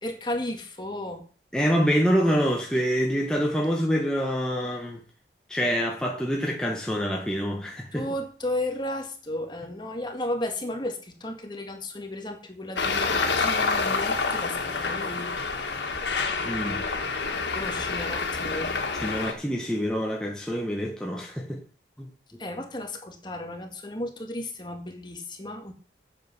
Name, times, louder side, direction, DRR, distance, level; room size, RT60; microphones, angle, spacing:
voice 1, 0.0-1.3 7.9-15.3 17.5-18.7 22.4-25.7, left 1 dB, 25° left, 1.8 m, -34 dB
voice 2, 1.5-5.0 5.5-8.1 16.4-16.8 19.0-21.6 22.0-22.1, equal, 5° left, 1.3 m, -26 dB
Traffic noise roadway noise, 12.8-19.3, left 4 dB, 90° left, 1.8 m, -28 dB
9.0 x 7.6 x 6.0 m
head